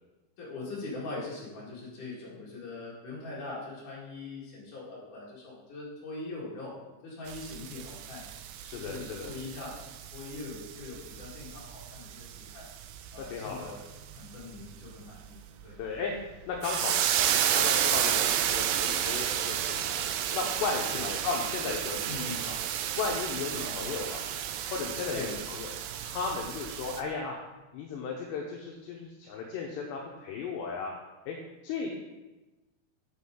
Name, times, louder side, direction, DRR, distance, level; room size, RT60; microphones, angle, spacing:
voice 1, 0.4-6.8 7.0-8.2 8.7-9.8 10.1-12.7 13.1-13.8 14.1-15.8 20.8-21.1 22.1-22.4 23.5-23.9 25.1-25.3, left 3 dB, 50° left, -5 dB, 2.8 m, -41 dB
sound 1, 7.3-27.0, right 10 dB, 90° right, 2.4 m, -32 dB
voice 2, 8.6-9.3 13.3-13.8 15.8-16.1 16.5-20.1 20.3-22.6 22.9-24.2 24.7-25.7 26.0-27.4 27.7-30.9 31.3-31.4 31.6-31.9, left 4 dB, 75° left, 0 dB, 2.8 m, -35 dB
8.5 x 8.2 x 3.7 m, 1.1 s
omnidirectional pair, 5.5 m